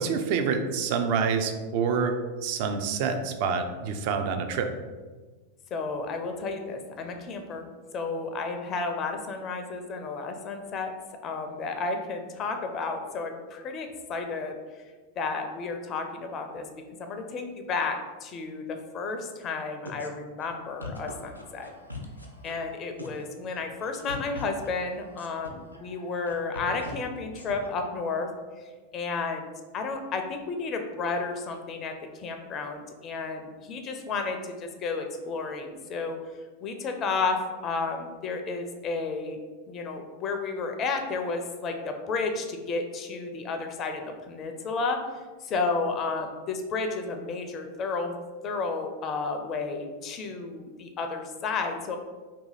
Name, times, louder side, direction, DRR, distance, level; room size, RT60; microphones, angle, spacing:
voice 1, 0.0-2.2 2.4-4.7, right 5 dB, 45° right, 7 dB, 0.3 m, -27 dB
voice 2, 5.7-7.7 7.9-10.9 11.2-14.5 15.2-16.6 17.0-21.7 22.4-28.3 28.9-36.2 36.6-39.4 39.7-44.0 44.3-45.0 45.4-48.1 48.4-52.0, left 4 dB, 30° left, 5 dB, 0.4 m, -32 dB
sound 1, 19.9-20.1 20.4-20.5 20.8-22.7 23.0-23.3 23.5-26.9 27.4-27.7, left 2 dB, 90° left, 0.4 m, -41 dB
2.7 x 2.7 x 3.8 m, 1.3 s
figure-of-eight pair, 90°, 0 cm